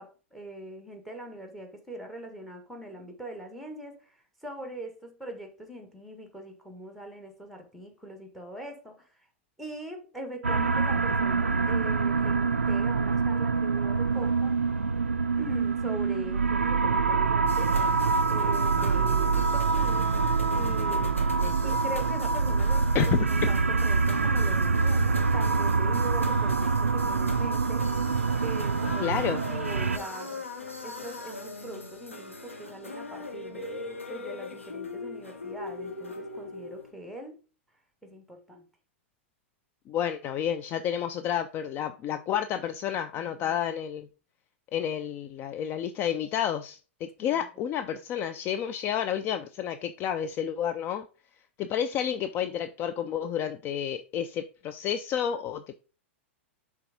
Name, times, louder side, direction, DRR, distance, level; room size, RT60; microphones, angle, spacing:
voice 1, 0.0-9.3 9.6-14.6 15.4-17.8 18.3-21.3 21.6-27.9 28.4-30.5 30.8-37.4 38.0-38.7 43.1-43.6 47.2-47.5, right 1 dB, ahead, 1.6 m, -42 dB
sound 1, 10.4-30.0, right 4 dB, 85° right, 0.4 m, -25 dB
sound 2, 17.5-36.9, left 2 dB, 90° left, 1.2 m, -40 dB
voice 2, 21.4-21.7 22.9-23.1 29.0-29.4 39.9-44.1 44.7-51.1 51.6-55.8, left 9 dB, 30° left, 0.4 m, -30 dB
6.8 x 3.6 x 5.1 m
figure-of-eight pair, 100°, 7 cm